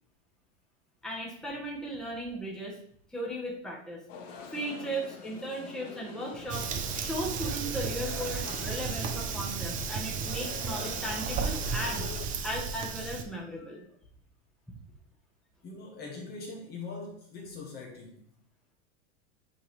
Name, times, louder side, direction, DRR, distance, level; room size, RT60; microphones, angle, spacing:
voice 1, 1.0-2.8 3.1-4.0 4.5-6.7 6.9-12.1 12.4-13.8, right 1 dB, ahead, -3 dB, 1.1 m, -36 dB
sound 1, 4.1-12.3, left 5 dB, 85° left, 1.5 m, -45 dB
Fire, 6.5-13.2, right 6 dB, 20° right, 0.5 m, -34 dB
voice 2, 15.6-18.3, left 3 dB, 25° left, 0 dB, 1.1 m, -42 dB
8.6 x 3.8 x 3.3 m, 0.63 s
supercardioid pair, 150°, 37 cm